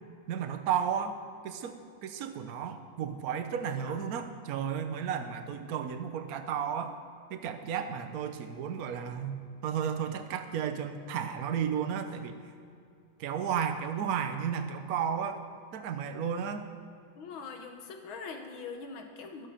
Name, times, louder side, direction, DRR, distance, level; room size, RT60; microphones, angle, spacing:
voice 1, 0.3-1.2 1.4-7.0 7.3-12.3 13.2-15.4 15.7-16.7, right 8 dB, 55° right, 8 dB, 1.2 m, -33 dB
voice 2, 17.2-19.5, left 5 dB, 80° left, 4 dB, 2.0 m, -42 dB
13.0 x 10.5 x 5.8 m, 2.4 s
omnidirectional pair, 2.2 m